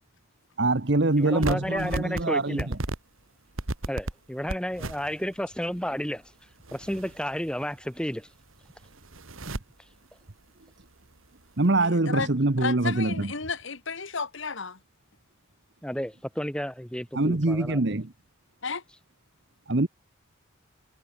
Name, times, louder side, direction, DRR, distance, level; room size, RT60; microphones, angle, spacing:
voice 1, 0.6-2.8 9.4-9.5 11.6-13.3 17.1-18.1 19.7-19.9, right 2 dB, 55° right, 1.1 m, -24 dB
voice 2, 1.2-2.7 3.9-6.2 6.7-8.3 15.8-17.8, equal, 5° left, 1.9 m, -32 dB
sound 1, 1.3-2.2 2.6-3.0 3.6-4.1 4.5-5.4 5.7-5.8 6.6-7.9 8.1-8.2 8.5-9.6 10.8-11.3, right 1 dB, 75° right, 2.5 m, -34 dB
voice 3, 11.8-12.3 12.6-14.8 18.6-18.8, left 4 dB, 65° left, 1.6 m, -32 dB
head